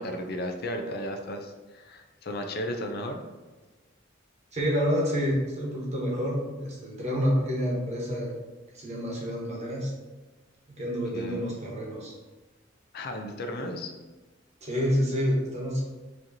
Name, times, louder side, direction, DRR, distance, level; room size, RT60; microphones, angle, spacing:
voice 1, 0.0-3.2 11.1-11.6 12.9-13.9, left 1 dB, 55° left, 5 dB, 0.5 m, -34 dB
voice 2, 4.5-8.3 8.7-9.9 10.8-12.1 14.6-15.8, equal, 35° right, -3 dB, 1.1 m, -28 dB
5.0 x 2.9 x 2.7 m, 1.2 s
head